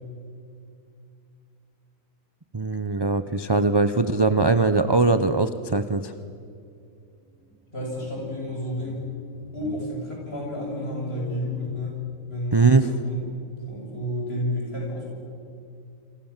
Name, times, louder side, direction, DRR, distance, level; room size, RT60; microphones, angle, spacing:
voice 1, 2.5-6.1 12.5-12.9, right 3 dB, 25° right, 10 dB, 0.6 m, -21 dB
sound 1, 6.9-7.0 7.3-12.3, left 1 dB, 10° left, 3.8 m, -43 dB
voice 2, 7.7-9.1 9.5-12.7 13.0-13.3 13.7-15.1, left 1 dB, 40° left, -2 dB, 8.2 m, -31 dB
28.5 x 27.0 x 7.4 m, 2.5 s
omnidirectional pair, 1.5 m